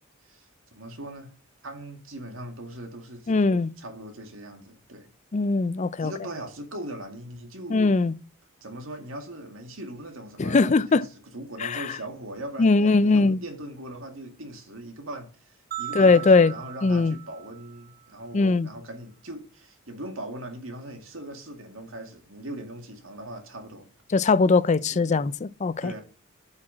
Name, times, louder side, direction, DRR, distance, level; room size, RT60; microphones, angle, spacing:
voice 1, 0.2-1.3 1.6-3.5 3.8-5.1 6.0-7.8 8.6-23.9 24.9-25.0 25.8-26.0, right 1 dB, 65° right, 2.1 m, -40 dB
voice 2, 3.3-3.7 5.3-6.1 7.7-8.1 10.4-11.0 11.6-11.9 12.6-13.4 15.9-16.5 16.8-17.1 18.3-18.7 24.1-25.9, left 3 dB, 35° left, 0.4 m, -20 dB
sound 1, 15.7-18.1, right 13 dB, 40° right, 0.7 m, -38 dB
8.5 x 4.8 x 7.4 m
head